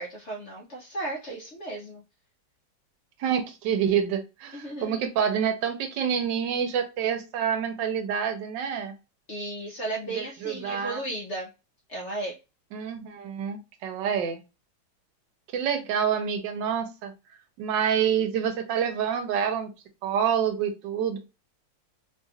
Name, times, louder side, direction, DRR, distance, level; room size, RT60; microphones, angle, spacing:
voice 1, 0.0-2.0 4.5-5.0 9.3-11.5 11.9-12.3, right 2 dB, 55° left, -1 dB, 0.8 m, -35 dB
voice 2, 3.2-8.9 10.1-11.0 12.7-14.4 15.5-17.1 17.6-19.7 20.0-21.2, right 8 dB, 80° right, 7 dB, 1.3 m, -27 dB
3.3 x 2.4 x 2.6 m, 0.28 s
omnidirectional pair, 2.0 m